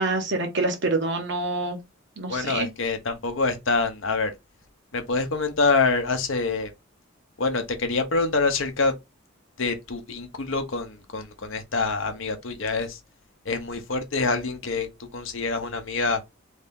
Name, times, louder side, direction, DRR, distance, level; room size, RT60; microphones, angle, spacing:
voice 1, 0.0-1.8 2.2-2.7, right 2 dB, 60° right, 1.1 m, -26 dB
voice 2, 2.3-4.3 4.9-6.7 7.4-8.9 9.6-13.0 13.5-16.2, left 3 dB, 65° left, 0.8 m, -26 dB
3.2 x 2.8 x 3.5 m
head